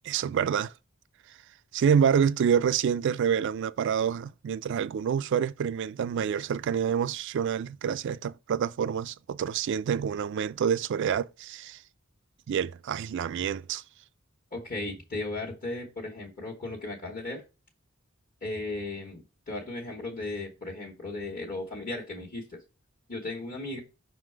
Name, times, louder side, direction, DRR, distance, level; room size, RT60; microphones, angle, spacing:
voice 1, 0.0-0.7 1.7-11.8 12.5-13.8, right 7 dB, 60° right, 0.3 m, -27 dB
voice 2, 14.5-17.4 18.4-22.6 23.1-23.8, left 2 dB, 40° left, 1.3 m, -36 dB
5.6 x 3.8 x 4.5 m
head